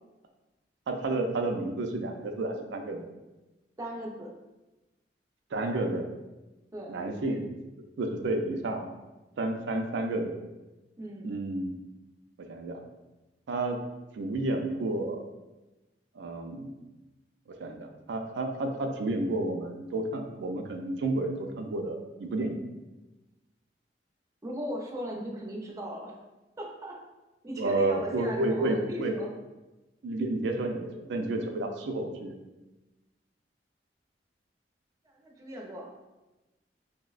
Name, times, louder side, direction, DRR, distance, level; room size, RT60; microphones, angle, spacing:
voice 1, 0.9-3.1 5.5-6.1 6.9-7.5 8.0-8.9 9.4-10.4 11.2-11.7 12.5-12.8 13.5-13.8 14.1-15.3 16.2-16.7 17.5-22.6 27.6-29.2 30.0-32.4, right 2 dB, 85° right, 3 dB, 0.4 m, -31 dB
voice 2, 3.8-4.3 6.7-6.9 11.0-11.3 24.4-26.2 26.6-26.9 27.4-29.3 35.0-35.9, equal, 20° right, -1 dB, 0.4 m, -38 dB
5.1 x 2.0 x 2.4 m, 1.1 s
head